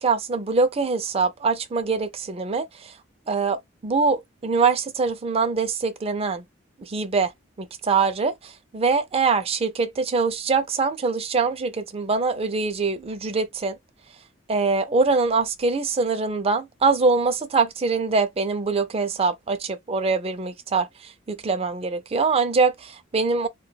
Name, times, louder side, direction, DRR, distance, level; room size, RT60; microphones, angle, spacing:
voice 1, 0.0-2.9 3.3-6.4 6.8-7.3 7.6-13.8 14.5-23.5, right 4 dB, 30° right, 0.4 m, -23 dB
2.3 x 2.2 x 3.2 m
head